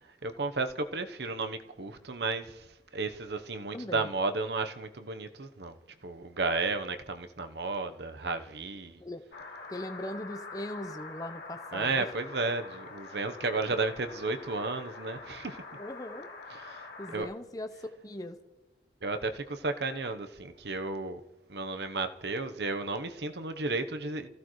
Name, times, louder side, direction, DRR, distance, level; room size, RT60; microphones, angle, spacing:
voice 1, 0.2-2.7 2.9-5.8 6.0-9.0 11.7-15.6 16.7-16.9 17.1-17.3 19.0-21.2 21.5-24.3, right 3 dB, 70° right, 1.0 m, -33 dB
voice 2, 3.7-4.1 9.0-9.2 9.7-12.1 15.7-16.3 17.0-18.4, left 1 dB, 20° left, 0.8 m, -39 dB
sound 1, 9.3-17.2, left 3 dB, 80° left, 3.0 m, -45 dB
27.5 x 15.0 x 3.2 m
head